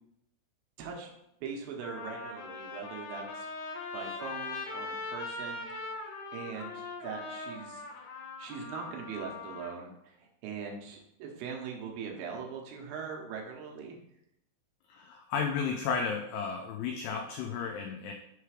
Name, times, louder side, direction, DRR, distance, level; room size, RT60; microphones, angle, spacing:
voice 1, 0.8-1.1 1.4-3.5 3.9-5.7 6.3-7.8 8.4-14.0, right 6 dB, 80° right, 1 dB, 2.1 m, -41 dB
Trumpet, 1.1-1.2 1.8-9.8, left 3 dB, 75° left, 3.0 m, -41 dB
voice 2, 14.9-18.1, left 6 dB, 90° left, 3 dB, 2.3 m, -33 dB
6.7 x 3.3 x 4.8 m, 0.79 s
omnidirectional pair, 5.4 m